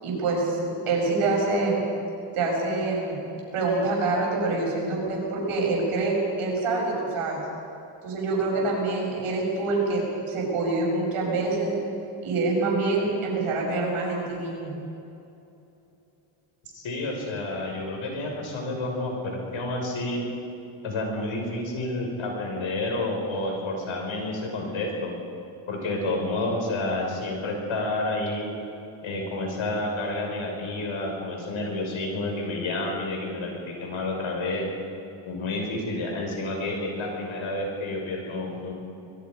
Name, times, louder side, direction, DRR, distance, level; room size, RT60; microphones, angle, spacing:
voice 1, 0.0-0.6 0.9-1.9 2.3-3.2 3.5-7.4 8.0-11.7 12.2-14.8, right 3 dB, 90° right, -2 dB, 7.1 m, -26 dB
voice 2, 16.7-20.2 20.8-25.2 25.7-28.5 29.0-34.7 35.2-38.7, left 2 dB, 70° left, 0 dB, 6.5 m, -30 dB
25.5 x 22.0 x 5.4 m, 2.8 s
cardioid pair, 90°, 50 cm